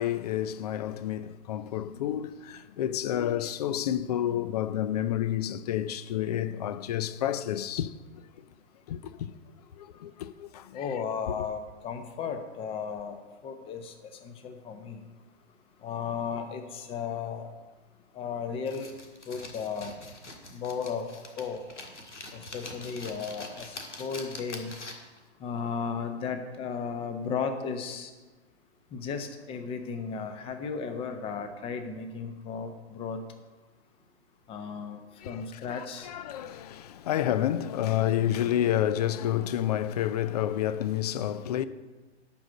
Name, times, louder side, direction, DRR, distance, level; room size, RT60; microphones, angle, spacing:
voice 1, 0.0-7.9 8.9-9.3 9.8-10.9 35.2-35.5 35.7-41.6, left 11 dB, 35° left, 0.5 m, -29 dB
voice 2, 10.7-13.9 14.2-15.0 15.8-17.5 18.1-18.9 19.3-19.9 20.5-21.6 22.3-24.7 25.4-28.1 28.9-33.2 34.5-36.1, left 6 dB, 15° left, 0.9 m, -35 dB
sound 1, 18.7-25.2, left 2 dB, 85° left, 1.9 m, -44 dB
11.5 x 5.0 x 7.6 m
figure-of-eight pair, 125°, 34 cm